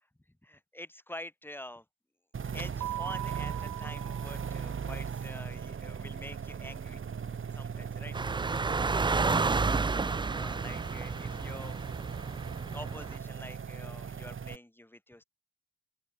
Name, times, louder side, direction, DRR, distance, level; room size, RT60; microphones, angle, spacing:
voice 1, 0.4-1.9 2.5-7.0 7.5-8.2 10.3-11.8 12.7-15.2, left 1 dB, 5° left, 7.3 m, -46 dB
sound 1, 2.3-14.6, right 6 dB, 40° right, 2.9 m, -39 dB
Keyboard (musical), 2.8-5.4, right 15 dB, 85° right, 6.4 m, -40 dB
sound 2, 8.1-13.2, right 4 dB, 15° right, 0.5 m, -31 dB
open air
cardioid pair, 90°, 30 cm